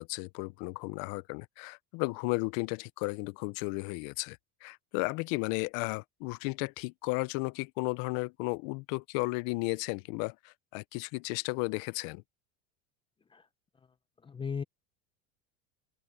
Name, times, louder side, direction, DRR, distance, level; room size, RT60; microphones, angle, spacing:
voice 1, 0.0-12.2, left 25 dB, 55° left, 0.6 m, -34 dB
voice 2, 14.2-14.6, left 6 dB, 10° left, 0.5 m, -36 dB
open air
supercardioid pair, 145°, 42 cm